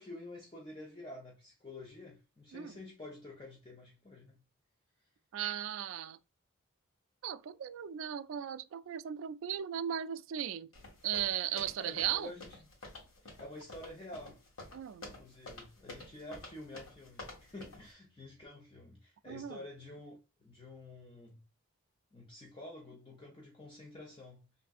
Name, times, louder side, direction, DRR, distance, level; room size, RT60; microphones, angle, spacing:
voice 1, 0.0-4.4 11.8-12.7 13.2-14.4 15.0-21.4 22.1-24.4, left 2 dB, 25° left, 0.6 m, -49 dB
voice 2, 5.3-6.2 7.2-10.7 11.0-12.3 14.7-15.1 19.3-19.6, right 10 dB, 70° right, 0.3 m, -37 dB
sound 1, 10.7-17.9, left 2 dB, 80° left, 1.5 m, -50 dB
3.5 x 2.6 x 2.3 m
head